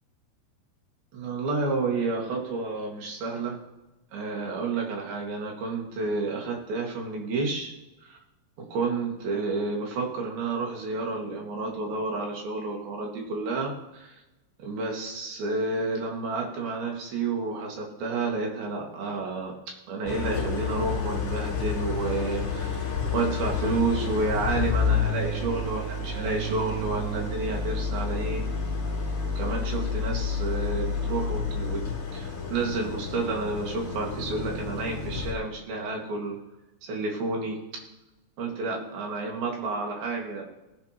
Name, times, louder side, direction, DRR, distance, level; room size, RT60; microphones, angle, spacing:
voice 1, 1.1-3.6 4.1-7.7 8.0-8.2 8.7-14.2 14.6-19.5 19.9-28.4 29.4-31.8 32.1-36.4 36.8-37.6 38.4-40.4, right 3 dB, 60° right, 0 dB, 3.6 m, -30 dB
Idling, 20.1-35.3, left 5 dB, 35° left, 3.0 m, -30 dB
18.0 x 10.5 x 3.0 m, 1.0 s
omnidirectional pair, 5.3 m